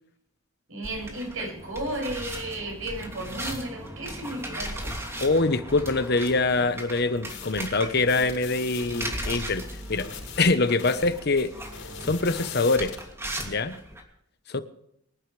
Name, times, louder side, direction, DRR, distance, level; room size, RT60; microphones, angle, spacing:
voice 1, 0.7-4.9, right 1 dB, 85° right, 7.1 m, -34 dB
sound 1, 0.8-14.0, right 1 dB, 15° right, 2.7 m, -38 dB
voice 2, 5.2-9.6 9.9-10.1 10.4-11.5 12.0-13.0 13.4-13.7 14.5-14.6, left 3 dB, 55° left, 1.1 m, -24 dB
sound 2, 7.2-13.0, left 4 dB, 85° left, 5.5 m, -41 dB
24.5 x 11.5 x 3.4 m
head